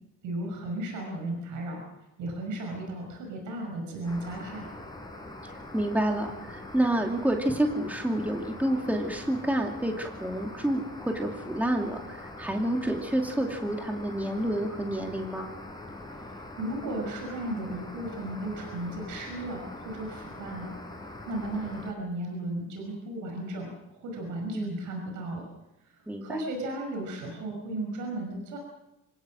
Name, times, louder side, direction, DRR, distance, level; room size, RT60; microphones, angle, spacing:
voice 1, 0.2-1.8 2.2-4.7 16.1-25.5 25.8-28.6, right 1 dB, 90° right, 2 dB, 5.8 m, -35 dB
sound 1, 4.0-21.9, left 1 dB, 15° left, 4.7 m, -43 dB
voice 2, 5.7-15.5 24.5-24.7 26.1-26.4, right 1 dB, 5° right, 1 dB, 2.6 m, -29 dB
26.0 x 18.5 x 6.4 m, 0.90 s
cardioid pair, 90°, 30 cm